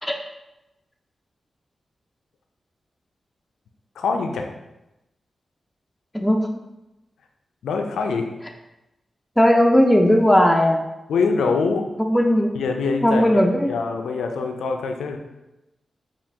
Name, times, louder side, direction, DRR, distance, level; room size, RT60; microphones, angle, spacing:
voice 1, 4.0-4.5 7.6-8.3 11.1-11.9 12.5-15.2, left 4 dB, 85° left, 4 dB, 0.4 m, -24 dB
voice 2, 6.1-6.5 9.4-10.8 12.0-12.5 13.0-13.7, equal, 10° left, 2 dB, 0.4 m, -17 dB
4.6 x 2.3 x 3.4 m, 0.96 s
supercardioid pair, 40°, 0 cm